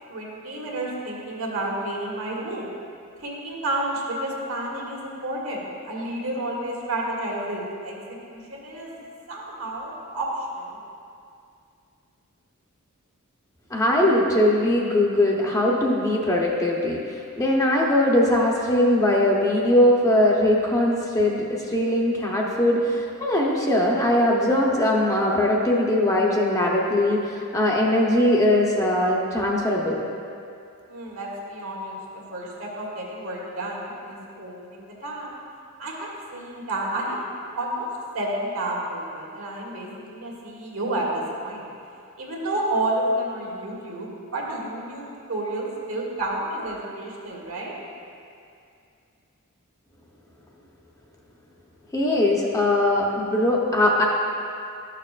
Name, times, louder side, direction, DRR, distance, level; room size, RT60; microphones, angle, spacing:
voice 1, 0.1-2.7 3.2-10.8 30.8-32.0 32.3-35.3 35.8-37.2 37.5-37.9 38.1-41.7 42.2-47.7, right 1 dB, 70° right, -3 dB, 1.5 m, -30 dB
voice 2, 13.7-17.0 17.4-30.0 51.9-54.0, left 1 dB, 15° left, -3 dB, 0.8 m, -21 dB
12.0 x 6.6 x 2.4 m, 2.4 s
head